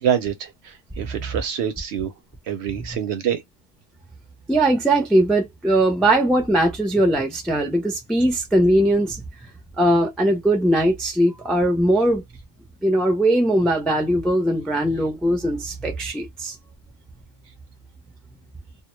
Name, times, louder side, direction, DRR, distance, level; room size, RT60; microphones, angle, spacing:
voice 1, 0.0-2.1 2.5-3.4, right 9 dB, 65° right, 0.8 m, -26 dB
voice 2, 4.5-9.2 9.8-12.2 12.8-16.5, right 1 dB, ahead, 0.4 m, -20 dB
2.2 x 2.1 x 3.0 m
omnidirectional pair, 1.3 m